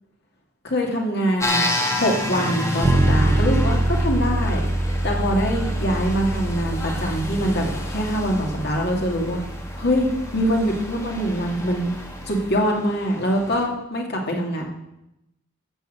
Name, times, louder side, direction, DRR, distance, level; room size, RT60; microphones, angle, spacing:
voice 1, 0.7-4.6 5.0-9.4 9.8-11.9 12.2-14.6, equal, 55° left, 0 dB, 2.3 m, -24 dB
sound 1, 1.4-13.6, left 1 dB, 15° left, 1.7 m, -31 dB
sound 2, 2.8-12.6, right 1 dB, 25° right, 0.8 m, -25 dB
13.5 x 5.6 x 7.8 m, 0.90 s
head